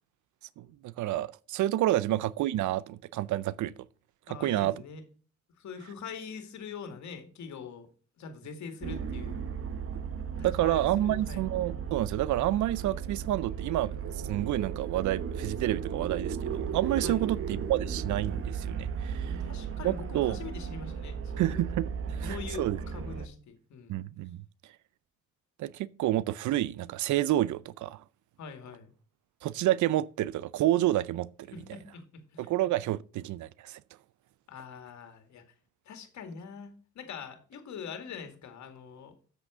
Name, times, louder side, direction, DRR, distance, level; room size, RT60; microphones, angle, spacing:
voice 1, 0.6-3.7 4.4-4.8 10.4-19.4 19.8-20.4 21.4-22.8 23.9-24.4 25.6-28.0 29.4-31.3 32.4-33.8, right 14 dB, 75° right, 0.5 m, -29 dB
voice 2, 4.3-5.0 5.6-7.9 8.2-9.5 10.4-11.5 17.0-17.4 19.2-21.6 22.0-24.0 28.4-28.9 31.5-32.5 34.5-35.4 35.9-39.2, left 6 dB, 70° left, 2.2 m, -43 dB
sound 1, 8.8-23.3, right 7 dB, 45° right, 1.1 m, -35 dB
7.8 x 6.5 x 6.1 m
cardioid pair, 90°, 30 cm